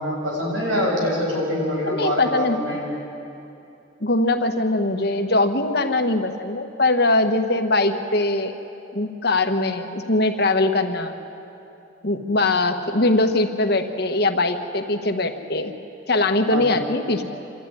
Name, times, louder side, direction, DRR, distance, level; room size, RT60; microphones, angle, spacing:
voice 1, 0.0-2.8 16.5-16.7, equal, 85° right, -3 dB, 7.4 m, -24 dB
voice 2, 1.8-2.8 4.0-8.5 8.9-11.1 12.0-15.7 16.1-17.2, left 2 dB, 55° left, 6 dB, 1.3 m, -21 dB
26.0 x 13.5 x 9.7 m, 2.8 s
head